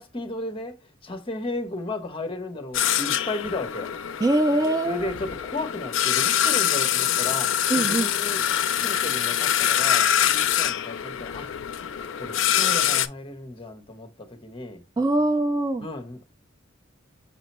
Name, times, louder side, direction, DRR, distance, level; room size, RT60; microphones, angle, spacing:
voice 1, 0.0-4.2 4.8-8.4 8.8-11.5 12.2-14.8 15.8-16.2, left 2 dB, 25° left, 0.8 m, -34 dB
sound 1, 2.7-13.1, left 10 dB, 70° left, 0.4 m, -24 dB
voice 2, 4.2-5.1 7.7-8.1 15.0-15.9, right 2 dB, 20° right, 0.3 m, -22 dB
5.8 x 2.1 x 4.1 m
head